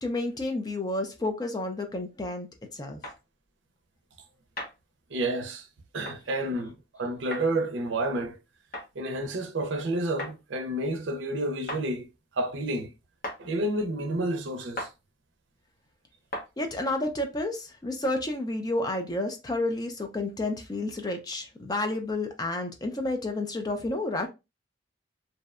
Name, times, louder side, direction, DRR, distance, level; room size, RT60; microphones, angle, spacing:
voice 1, 0.0-3.0 16.6-24.3, left 2 dB, 20° left, 0.4 m, -30 dB
sound 1, 3.0-3.2 4.6-4.8 6.0-6.2 7.3-7.5 8.7-8.9 10.2-10.4 11.7-11.8 13.2-13.4 14.8-14.9 16.3-16.5, left 1 dB, 50° left, 0.7 m, -36 dB
voice 2, 5.1-5.7 5.9-8.4 9.0-12.1 12.3-12.9 13.4-14.9, right 1 dB, 75° right, 0.5 m, -30 dB
2.6 x 2.1 x 2.4 m
head